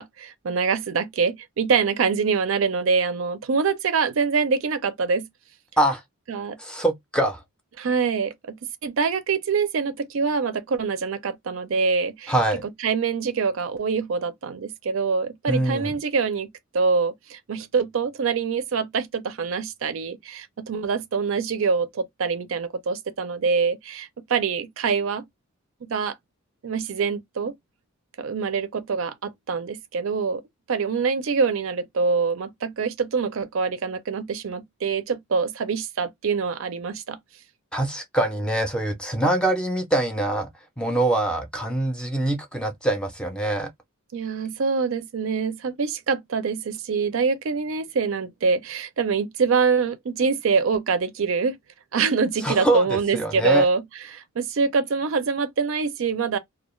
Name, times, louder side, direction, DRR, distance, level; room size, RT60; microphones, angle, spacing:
voice 1, 0.0-5.3 6.3-6.6 7.8-12.3 12.6-25.2 25.8-26.1 26.6-27.5 28.2-30.4 30.7-37.2 44.1-51.6 51.9-53.8 54.1-56.4, right 5 dB, 65° right, 0.4 m, -25 dB
voice 2, 6.6-7.4 12.3-12.6 15.5-16.0 37.7-40.5 40.8-43.7 52.4-52.9 53.1-53.7, right 1 dB, 5° left, 0.5 m, -24 dB
2.3 x 2.2 x 3.0 m
head